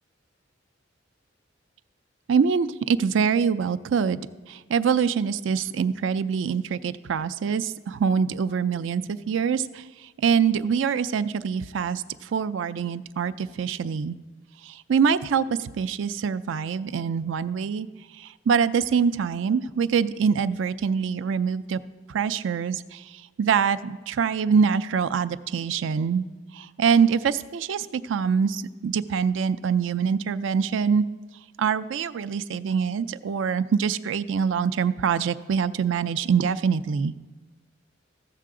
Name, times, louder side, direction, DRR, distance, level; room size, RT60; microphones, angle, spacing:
voice 1, 2.3-9.8 10.2-14.2 14.6-17.9 18.2-21.8 22.1-26.3 26.5-31.1 31.6-37.1, right 6 dB, 70° right, 14 dB, 0.4 m, -24 dB
14.5 x 6.7 x 3.7 m, 1.2 s
head